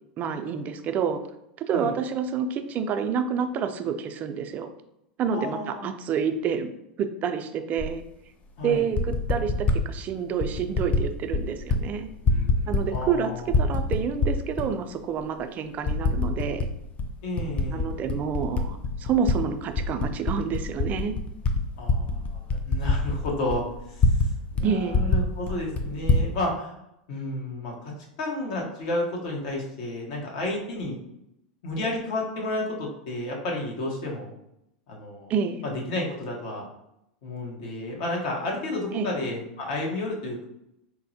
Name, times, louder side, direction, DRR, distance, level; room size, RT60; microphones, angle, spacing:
voice 1, 0.2-1.2 1.7-4.7 5.2-6.7 7.0-8.0 8.6-12.1 12.7-13.3 13.6-16.7 17.7-21.2 24.6-25.0 35.3-35.6 38.9-39.1, right 7 dB, 35° right, 8 dB, 0.3 m, -28 dB
voice 2, 5.3-6.0 8.6-8.9 12.2-13.5 17.2-17.9 21.8-24.3 24.5-26.7 27.1-27.9 28.2-31.0 31.6-34.3 34.9-35.3 35.6-36.6 37.2-40.5, left 1 dB, 60° left, -1 dB, 1.0 m, -31 dB
Typing, 7.8-7.9 8.7-9.8 10.4-11.0 11.3-11.8 12.1-13.2 13.5-14.7 15.2-15.3 15.9-16.7 17.0-19.4 19.7-24.3 24.6-24.7 24.9-26.3, left 3 dB, 30° left, 0.4 m, -24 dB
4.1 x 2.1 x 2.7 m, 0.83 s
hypercardioid pair, 105°, 5 cm